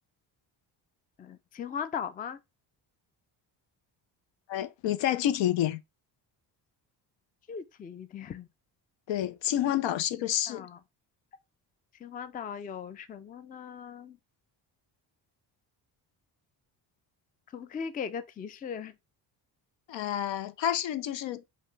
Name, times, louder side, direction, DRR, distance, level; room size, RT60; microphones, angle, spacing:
voice 1, 1.2-2.4 7.5-8.5 10.5-10.8 12.0-14.2 17.5-18.9, left 7 dB, 20° left, 0.3 m, -38 dB
voice 2, 4.5-5.8 9.1-10.7 19.9-21.4, left 11 dB, 75° left, 0.7 m, -29 dB
5.3 x 2.8 x 3.2 m
cardioid pair, 125°, 44 cm